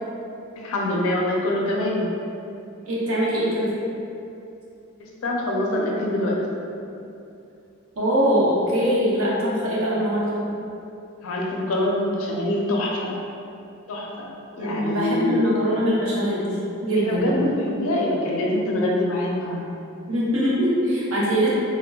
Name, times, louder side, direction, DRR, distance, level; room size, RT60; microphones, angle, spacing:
voice 1, 0.6-2.0 5.2-6.3 11.2-13.1 13.9-14.3 14.6-15.4 17.0-19.6, left 1 dB, 90° left, -2 dB, 0.5 m, -24 dB
voice 2, 2.8-3.7 8.0-10.4 14.6-17.4 20.1-21.5, equal, 90° right, -6 dB, 0.7 m, -22 dB
3.5 x 2.1 x 2.2 m, 2.7 s
head